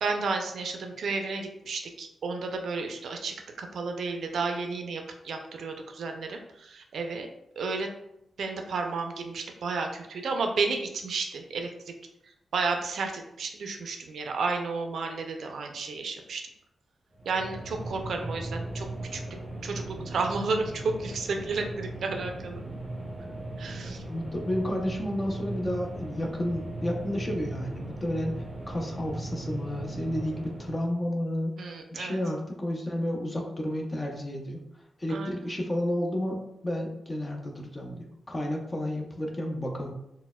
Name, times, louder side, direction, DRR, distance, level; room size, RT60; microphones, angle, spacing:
voice 1, 0.0-7.3 7.6-7.9 8.4-11.7 12.5-16.4 17.3-18.9 19.1-19.2 19.6-22.6 23.6-24.0 31.6-32.2 35.1-35.3, right 4 dB, 70° right, 4 dB, 0.4 m, -32 dB
sound 1, 17.1-31.0, right 1 dB, 15° right, 0.8 m, -38 dB
voice 2, 24.1-31.5 31.9-34.6 35.0-36.4 36.6-39.9, left 1 dB, 15° left, 1 dB, 0.4 m, -31 dB
4.1 x 2.1 x 2.2 m, 0.80 s
wide cardioid pair, 155°, 0 cm